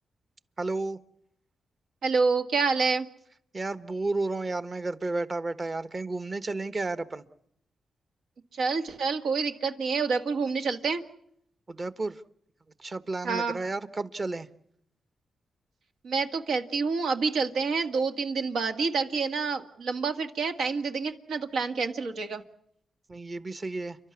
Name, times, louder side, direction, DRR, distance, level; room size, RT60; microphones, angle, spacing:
voice 1, 0.6-1.0 3.5-7.2 11.7-12.2 12.8-14.5 23.1-24.0, right 3 dB, 35° right, 12 dB, 1.2 m, -32 dB
voice 2, 2.0-3.1 8.5-11.0 13.2-13.6 16.0-22.4, right 4 dB, 85° right, 5 dB, 1.8 m, -28 dB
29.5 x 12.0 x 9.7 m, 0.73 s
cardioid pair, 80°, 0 cm